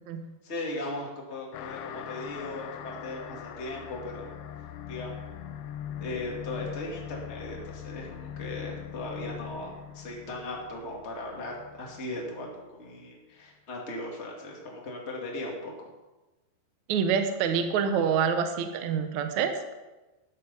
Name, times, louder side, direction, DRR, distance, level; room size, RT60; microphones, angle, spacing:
voice 1, 0.4-4.3 4.9-5.3 6.0-15.9, left 2 dB, 25° left, -1 dB, 1.7 m, -38 dB
sound 1, 1.5-12.5, left 9 dB, 75° left, 2.6 m, -41 dB
voice 2, 16.9-19.7, right 7 dB, 85° right, 7 dB, 1.6 m, -26 dB
13.0 x 9.9 x 5.6 m, 1.1 s
omnidirectional pair, 5.0 m